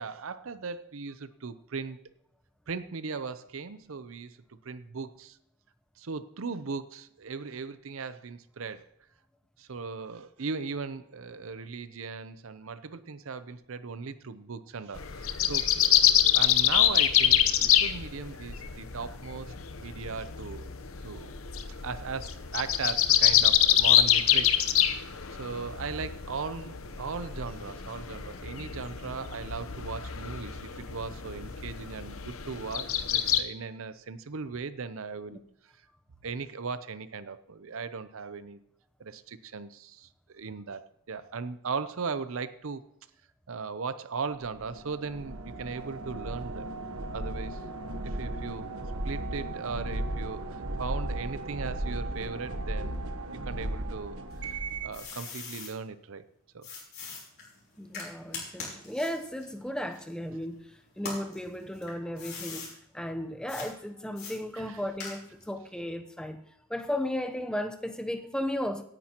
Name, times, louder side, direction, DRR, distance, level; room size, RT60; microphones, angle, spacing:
voice 1, 0.0-2.0 2.7-4.4 4.6-5.4 6.0-8.9 9.6-15.7 16.3-19.5 19.8-20.7 21.0-21.3 21.8-25.1 25.4-35.4 36.2-38.6 39.0-40.8 41.1-42.8 43.5-46.7 47.1-47.6 48.0-48.7 49.0-53.1 53.5-56.2 56.5-56.7 64.6-64.8, right 5 dB, 70° right, 0.6 m, -38 dB
sound 1, 15.0-33.4, left 11 dB, 75° left, 0.9 m, -26 dB
sound 2, 44.4-55.0, right 1 dB, 90° right, 1.3 m, -36 dB
sound 3, 54.3-55.7 56.6-60.5 60.9-62.7 63.5-63.7 64.2-65.5, left 4 dB, 50° left, 5.1 m, -42 dB
voice 2, 57.8-66.4 66.7-68.8, left 1 dB, 5° left, 0.7 m, -35 dB
17.0 x 10.0 x 3.0 m
head